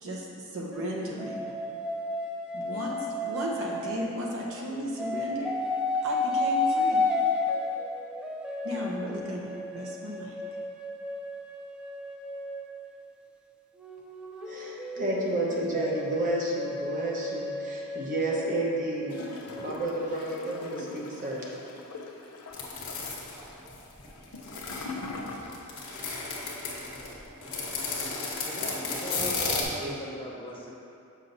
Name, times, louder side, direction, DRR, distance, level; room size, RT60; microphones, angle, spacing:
voice 1, 0.0-1.5 2.5-3.0 3.2-5.5 6.0-7.0 8.6-10.4, equal, 65° right, -3 dB, 1.0 m, -35 dB
sound 1, 0.7-4.5 5.0-13.1 13.8-19.7, left 2 dB, 5° right, 0.3 m, -33 dB
voice 2, 14.5-21.5 29.2-29.9, right 1 dB, 40° right, -4 dB, 1.0 m, -31 dB
Gurgling / Toilet flush, 19.1-25.9 26.2-26.3, left 3 dB, 90° left, 0.6 m, -42 dB
sound 2, 22.5-24.9 25.3-29.6, left 4 dB, 70° left, 1.2 m, -33 dB
voice 3, 28.5-30.7, equal, 25° left, -4 dB, 0.7 m, -41 dB
7.1 x 5.8 x 2.7 m, 2.6 s
head